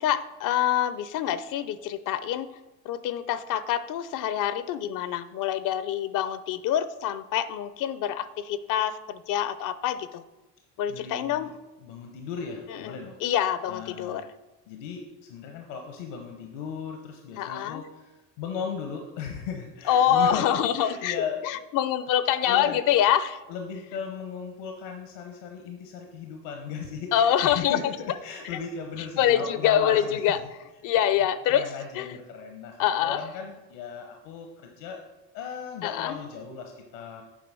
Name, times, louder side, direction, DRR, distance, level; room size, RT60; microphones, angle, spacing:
voice 1, 0.0-2.5 2.8-10.2 10.8-11.5 12.8-12.9 13.2-14.3 17.4-17.8 19.9-23.4 27.1-27.8 29.2-30.4 30.8-31.6 32.0-32.1 32.8-33.2 35.8-36.2, left 10 dB, 60° left, 14 dB, 0.7 m, -25 dB
voice 2, 10.9-13.2 13.7-14.3 14.7-20.5 20.8-21.6 22.4-22.8 23.5-30.4 30.9-31.0 31.5-35.0 35.3-37.2, left 6 dB, 80° left, 3 dB, 1.1 m, -37 dB
7.9 x 4.8 x 6.1 m, 1.1 s
supercardioid pair, 80°, 36 cm